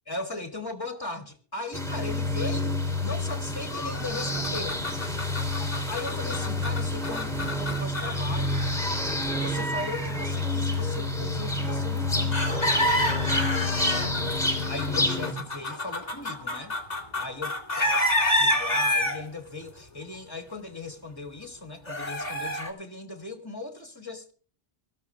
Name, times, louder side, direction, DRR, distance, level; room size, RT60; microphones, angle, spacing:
voice 1, 0.1-4.9 5.9-8.6 9.4-12.6 13.2-13.5 13.9-14.4 14.7-16.8 17.2-18.0 18.4-24.3, left 2 dB, 20° left, 2.5 m, -38 dB
sound 1, 1.7-15.3, left 2 dB, 5° left, 2.9 m, -28 dB
sound 2, 3.7-10.1 12.3-19.3 21.9-22.7, left 1 dB, 40° left, 2.3 m, -29 dB
24.0 x 13.5 x 2.4 m
omnidirectional pair, 1.1 m